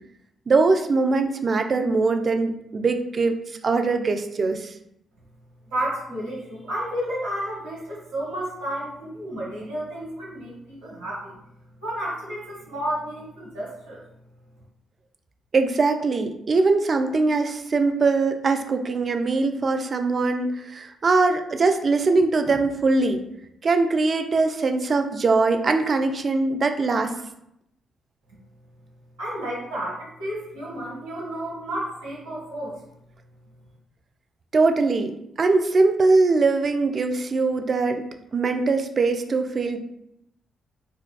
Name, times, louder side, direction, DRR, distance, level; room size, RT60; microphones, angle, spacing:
voice 1, 0.5-3.4 3.6-4.7 15.5-23.2 23.6-27.1 34.5-38.0 38.3-39.8, right 3 dB, 45° right, 6 dB, 0.4 m, -22 dB
voice 2, 5.7-11.3 11.8-14.0 29.2-32.8, right 1 dB, 85° right, -6 dB, 1.2 m, -31 dB
4.4 x 2.3 x 2.2 m, 0.79 s
hypercardioid pair, 40°, 0 cm